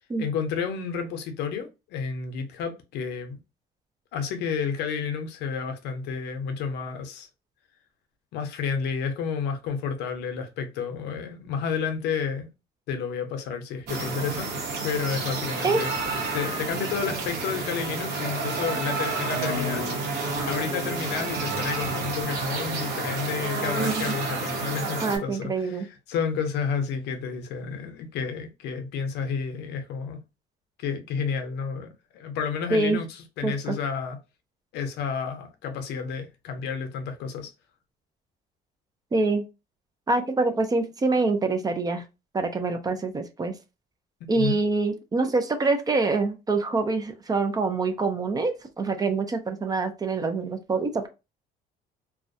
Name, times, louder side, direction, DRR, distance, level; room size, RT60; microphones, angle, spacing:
voice 1, 0.2-3.4 4.1-7.3 8.3-12.5 12.9-14.5 14.8-15.9 16.3-20.2 20.5-30.2 30.8-34.2 34.7-37.5 44.3-44.6, left 6 dB, 85° left, 0.6 m, -31 dB
sound 1, 13.9-25.2, right 3 dB, 70° right, 0.9 m, -30 dB
voice 2, 25.0-25.9 32.7-33.0 33.4-33.7 39.1-39.4 40.1-42.0 42.3-43.5 44.3-51.1, right 3 dB, 25° right, 0.4 m, -25 dB
2.2 x 2.1 x 2.6 m
cardioid pair, 110°, 17 cm